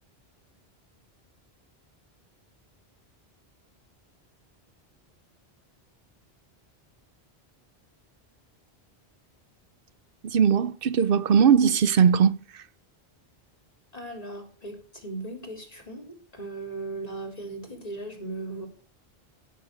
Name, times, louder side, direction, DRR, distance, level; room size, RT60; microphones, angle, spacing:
voice 1, 10.2-12.6, right 7 dB, 60° right, 0.9 m, -20 dB
voice 2, 13.9-18.7, right 2 dB, 35° left, 4.1 m, -37 dB
16.0 x 7.6 x 7.1 m
omnidirectional pair, 1.1 m